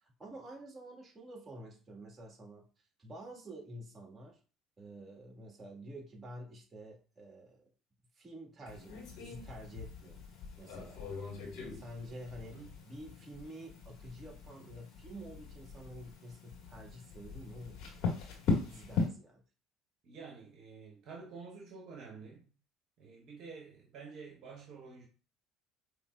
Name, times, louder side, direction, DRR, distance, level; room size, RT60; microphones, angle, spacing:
voice 1, 0.2-2.7 3.0-4.4 4.8-7.7 8.2-10.2 10.6-11.3 11.7-17.8 18.7-19.4, right 1 dB, 30° right, 1.9 m, -49 dB
sound 1, 8.7-19.1, left 4 dB, 55° left, 1.9 m, -39 dB
voice 2, 20.0-22.5 23.0-25.1, right 5 dB, 55° right, 1.1 m, -49 dB
5.2 x 3.1 x 2.4 m
hypercardioid pair, 60°, 0 cm